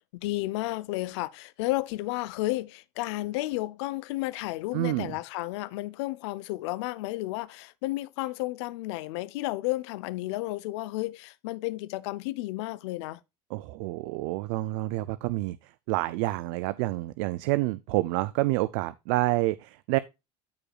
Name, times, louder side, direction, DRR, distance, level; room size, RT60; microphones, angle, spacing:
voice 1, 0.2-13.2, left 18 dB, 85° left, 0.7 m, -32 dB
voice 2, 4.7-5.1 13.5-20.0, right 19 dB, 80° right, 0.5 m, -28 dB
13.5 x 5.0 x 2.3 m
supercardioid pair, 110°, 14 cm